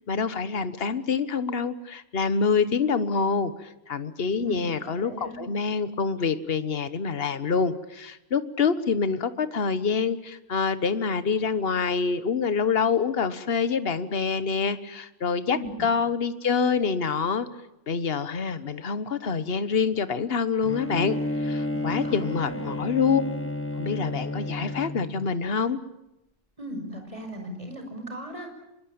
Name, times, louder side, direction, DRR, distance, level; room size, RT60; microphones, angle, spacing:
voice 1, 0.1-17.5 17.9-21.2 21.4-23.2 23.8-25.8, left 5 dB, 50° left, 13 dB, 1.4 m, -26 dB
voice 2, 4.4-5.4 15.4-15.9 21.7-22.9 26.6-28.5, right 1 dB, 25° right, 4 dB, 5.8 m, -38 dB
Bowed string instrument, 20.6-25.3, left 1 dB, 10° left, 1.2 m, -31 dB
25.0 x 22.5 x 8.7 m, 0.88 s
omnidirectional pair, 1.3 m